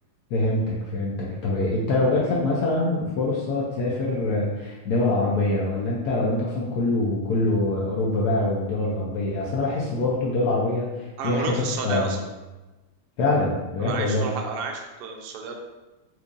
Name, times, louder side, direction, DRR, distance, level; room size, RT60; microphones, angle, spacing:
voice 1, 0.3-12.1 13.2-14.3, left 2 dB, 75° left, -5 dB, 0.9 m, -24 dB
voice 2, 11.2-12.2 13.8-15.5, right 5 dB, 85° right, 2 dB, 0.9 m, -31 dB
4.4 x 2.6 x 2.5 m, 1.1 s
omnidirectional pair, 2.3 m